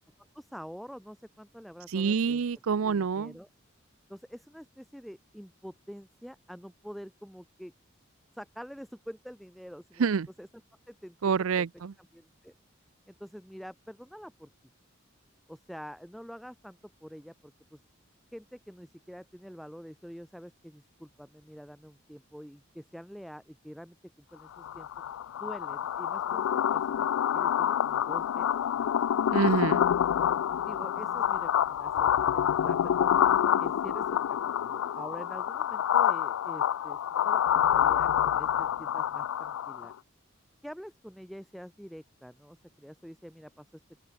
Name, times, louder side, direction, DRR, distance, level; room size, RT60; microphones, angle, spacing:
voice 1, 0.2-2.4 2.8-3.5 4.1-7.7 8.3-10.1 10.4-10.5 10.9-11.3 12.0-12.5 13.1-14.5 15.5-17.8 18.3-24.9 25.4-27.1 27.3-28.5 30.6-34.2 34.6-37.0 37.2-39.9 40.6-44.0, equal, ahead, 1.2 m, -46 dB
voice 2, 1.9-3.3 10.0-10.3 11.2-11.9 29.3-29.9, right 6 dB, 90° right, 0.5 m, -27 dB
sound 1, 24.6-39.9, left 9 dB, 85° left, 0.3 m, -27 dB
open air
head